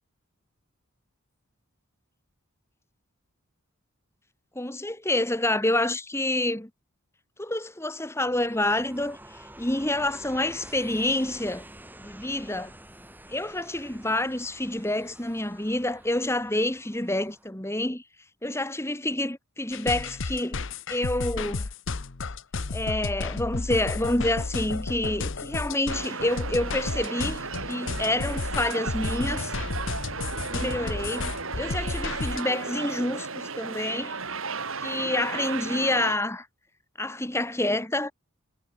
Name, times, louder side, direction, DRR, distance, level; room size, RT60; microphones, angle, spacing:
voice 1, 4.6-6.7 7.4-9.2 9.6-11.6 12.0-12.7 13.3-18.0 18.4-20.6 20.9-21.7 22.7-29.5 30.5-34.2 34.8-36.5 37.0-38.1, left 1 dB, 10° left, 2.0 m, -28 dB
sound 1, 8.2-17.5, right 1 dB, 10° right, 6.6 m, -48 dB
sound 2, 19.7-32.4, left 3 dB, 60° left, 1.0 m, -32 dB
sound 3, 25.9-36.2, right 4 dB, 65° right, 4.0 m, -34 dB
head